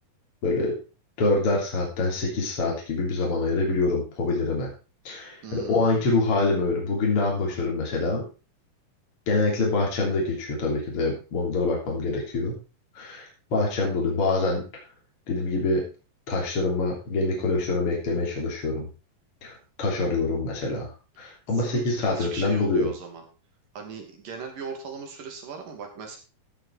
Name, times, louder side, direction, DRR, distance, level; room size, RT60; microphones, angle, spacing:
voice 1, 0.4-0.7 1.2-4.7 5.0-8.2 9.3-12.5 12.9-14.6 15.3-15.8 16.3-18.9 19.4-20.9 21.2-22.9, left 3 dB, 40° left, -1 dB, 4.0 m, -25 dB
voice 2, 5.4-6.2 21.5-23.2 23.7-26.2, right 5 dB, 70° right, 3 dB, 4.3 m, -38 dB
15.0 x 6.8 x 4.7 m, 0.33 s
omnidirectional pair, 4.0 m